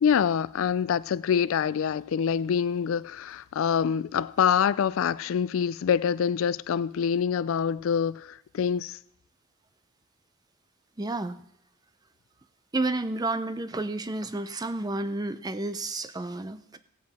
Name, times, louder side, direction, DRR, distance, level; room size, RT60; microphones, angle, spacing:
voice 1, 0.0-9.0, left 7 dB, 65° left, 0.3 m, -25 dB
voice 2, 11.0-11.4 12.7-16.8, right 2 dB, 20° right, 0.5 m, -31 dB
16.5 x 8.0 x 4.2 m
head